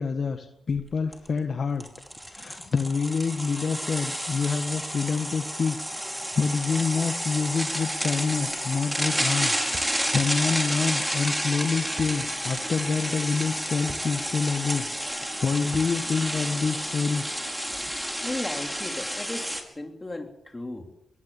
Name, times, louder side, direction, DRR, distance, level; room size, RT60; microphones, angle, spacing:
voice 1, 0.0-1.8 2.3-9.5 9.8-14.9 15.4-17.2, left 5 dB, 55° left, 7 dB, 1.6 m, -27 dB
sound 1, 0.7-0.8 1.1-1.3 1.8-19.6, equal, 5° right, 5.1 m, -30 dB
sound 2, 9.7-10.1 12.0-12.3 12.6-12.7 13.9-14.2 15.7-16.0, right 3 dB, 50° right, 2.5 m, -42 dB
voice 2, 18.2-20.9, left 2 dB, 25° left, 4 dB, 3.7 m, -35 dB
22.0 x 17.0 x 7.4 m, 0.87 s
supercardioid pair, 45°, 0 cm